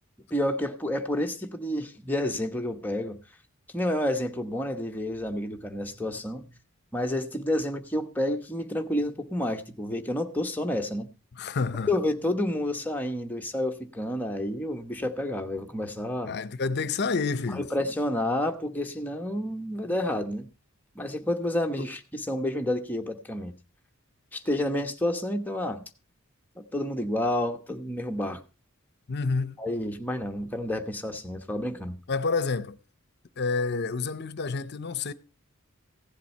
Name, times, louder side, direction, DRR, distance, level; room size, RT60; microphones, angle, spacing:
voice 1, 0.3-3.2 3.7-6.4 6.9-11.1 11.9-16.3 17.5-20.5 20.9-23.5 24.3-25.8 26.6-28.4 29.6-32.0, left 1 dB, 10° left, 1.0 m, -29 dB
voice 2, 11.4-11.9 16.2-17.7 29.1-29.6 32.1-32.8 33.4-35.1, left 4 dB, 50° left, 0.7 m, -28 dB
15.5 x 7.6 x 5.4 m
head